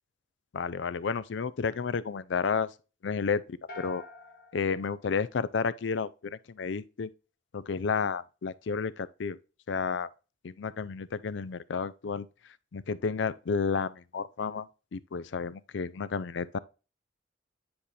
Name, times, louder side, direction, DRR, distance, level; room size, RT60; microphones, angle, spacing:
voice 1, 0.5-2.7 3.0-4.0 4.5-7.1 7.5-9.4 9.7-10.1 10.4-12.3 12.7-16.6, left 5 dB, 70° left, 0.5 m, -31 dB
sound 1, 3.7-5.9, left 2 dB, 50° left, 1.2 m, -49 dB
9.6 x 4.3 x 3.3 m
head